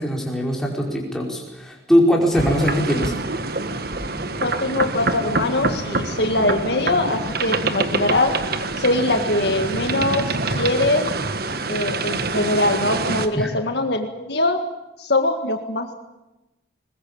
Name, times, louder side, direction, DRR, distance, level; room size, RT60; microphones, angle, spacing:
voice 1, 0.0-3.1 13.3-13.5, equal, ahead, -1 dB, 5.1 m, -21 dB
sound 1, 2.3-13.3, right 3 dB, 50° right, 1.6 m, -25 dB
voice 2, 4.4-8.3 8.8-11.1 11.7-14.6 15.0-15.9, left 2 dB, 60° left, 6 dB, 1.9 m, -22 dB
21.5 x 21.5 x 8.8 m, 0.97 s
head